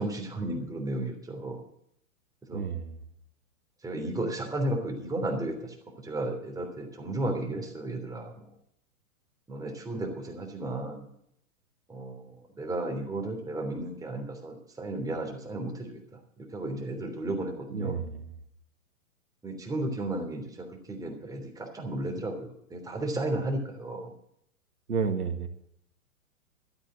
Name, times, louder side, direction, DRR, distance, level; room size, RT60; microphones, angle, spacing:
voice 1, 0.0-1.6 2.5-2.6 3.8-5.7 6.0-8.3 9.5-11.1 11.9-12.3 12.5-16.0 16.4-18.0 19.4-24.1, right 1 dB, 10° right, 1 dB, 3.2 m, -33 dB
voice 2, 2.5-3.0 17.7-18.3 24.9-25.5, right 5 dB, 85° right, 7 dB, 1.9 m, -31 dB
13.5 x 8.3 x 7.5 m, 0.72 s
hypercardioid pair, 115°, 43 cm